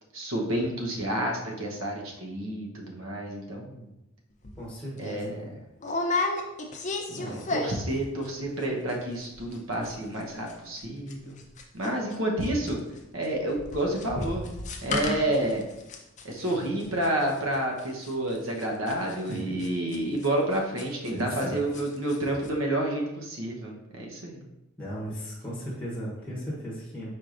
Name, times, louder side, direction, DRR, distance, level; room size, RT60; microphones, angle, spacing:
voice 1, 0.1-3.9 5.0-5.5 7.1-11.4 11.7-12.8 13.1-14.5 14.8-15.6 16.2-24.4, right 1 dB, 70° right, 0 dB, 0.9 m, -29 dB
sound 1, 4.4-4.6 5.0-5.2 5.8-8.0 8.2-8.6 8.9-9.0 9.2-9.6 9.8-12.2 12.4-21.5 21.7-22.2 22.4-22.5, left 2 dB, 35° left, 0.4 m, -33 dB
voice 2, 4.6-5.3 7.2-7.3 19.3-19.5 21.1-21.8 24.8-27.1, equal, 5° left, -6 dB, 0.9 m, -36 dB
4.7 x 4.2 x 2.5 m, 0.93 s
head